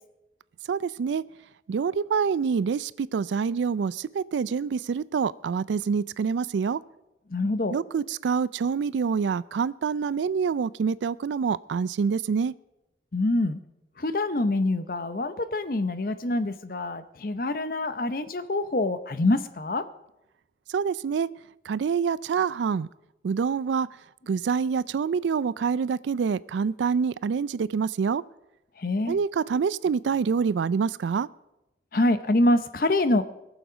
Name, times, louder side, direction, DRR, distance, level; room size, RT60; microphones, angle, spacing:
voice 1, 0.7-1.2 1.7-6.8 7.7-12.5 20.7-21.3 21.7-22.9 23.2-23.9 24.3-28.2 29.1-31.3, right 6 dB, 85° right, 19 dB, 0.3 m, -26 dB
voice 2, 7.3-7.8 13.1-13.6 14.0-19.9 28.8-29.2 31.9-33.2, left 2 dB, 50° left, 12 dB, 0.7 m, -25 dB
21.0 x 7.1 x 5.1 m, 0.93 s
head